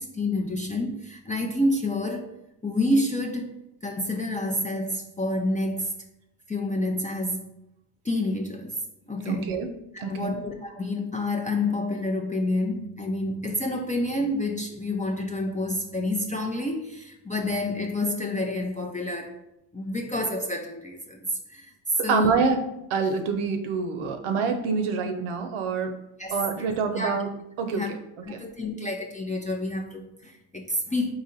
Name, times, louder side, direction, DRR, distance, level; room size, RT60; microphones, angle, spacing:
voice 1, 0.0-2.3 2.6-6.0 6.5-7.5 8.0-8.8 9.1-9.6 9.9-19.3 19.7-22.4 26.2-26.7 27.0-27.1 27.7-27.9 28.2-31.1, left 1 dB, 15° left, 1 dB, 0.5 m, -28 dB
voice 2, 9.3-9.7 10.0-10.4 22.0-22.6 22.9-26.0 26.3-27.3 27.6-28.0 28.3-28.4, right 5 dB, 80° right, 6 dB, 0.7 m, -26 dB
4.0 x 2.8 x 3.9 m, 0.85 s
supercardioid pair, 50°, 49 cm